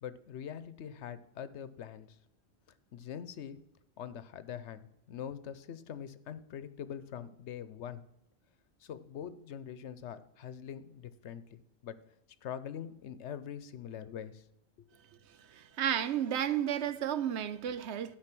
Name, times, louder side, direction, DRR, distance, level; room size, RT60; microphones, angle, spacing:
voice 1, 0.0-2.2 2.9-3.6 4.0-8.0 8.8-12.0 12.4-14.4, left 8 dB, 90° left, 1.0 m, -43 dB
voice 2, 15.8-18.2, right 10 dB, 90° right, 1.0 m, -32 dB
12.0 x 5.1 x 6.1 m
omnidirectional pair, 1.1 m